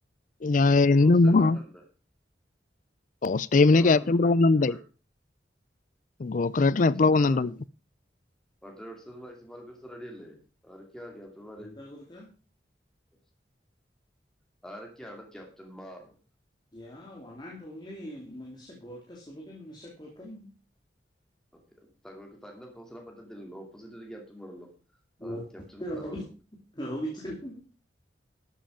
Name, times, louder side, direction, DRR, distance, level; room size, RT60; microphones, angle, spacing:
voice 1, 0.4-1.6 3.2-4.7 6.2-7.5, left 3 dB, 45° left, 0.5 m, -20 dB
voice 2, 1.0-1.8 3.5-4.8 6.7-7.5 8.6-10.4 10.6-11.7 14.6-16.2 21.5-24.7 25.2-26.2, equal, 5° left, 2.6 m, -45 dB
voice 3, 11.6-12.3 16.7-20.5 25.2-25.4 25.8-26.2 26.7-27.6, equal, 25° left, 2.7 m, -39 dB
12.5 x 7.8 x 5.1 m
head